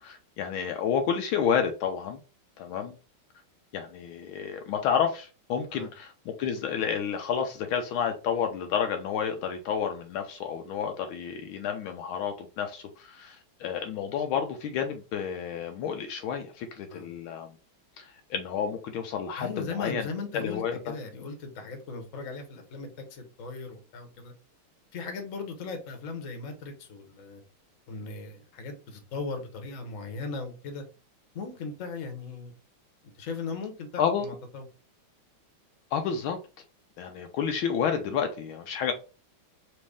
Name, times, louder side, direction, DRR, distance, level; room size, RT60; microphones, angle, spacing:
voice 1, 0.0-2.2 2.6-2.9 3.7-17.5 18.0-20.1 20.3-20.8 34.0-34.3 35.9-36.4 37.0-38.9, left 7 dB, 80° left, 1.4 m, -30 dB
voice 2, 19.4-24.3 24.9-27.4 27.9-30.8 31.3-32.5 33.2-34.6, left 4 dB, 45° left, 1.2 m, -38 dB
4.2 x 3.1 x 3.4 m
omnidirectional pair, 2.3 m